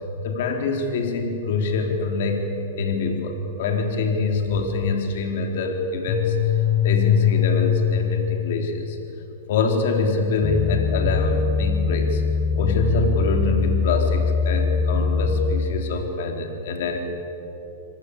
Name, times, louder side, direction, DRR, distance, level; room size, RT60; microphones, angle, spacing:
voice 1, 0.2-2.4 2.8-6.4 6.8-9.0 9.5-12.2 12.6-17.0, left 3 dB, 65° left, 3 dB, 4.0 m, -24 dB
sound 1, 6.1-8.6, left 11 dB, 45° left, 2.0 m, -22 dB
sound 2, 10.4-15.7, left 5 dB, 20° left, 1.2 m, -23 dB
27.0 x 19.0 x 8.7 m, 3.0 s
hypercardioid pair, 135°, 0 cm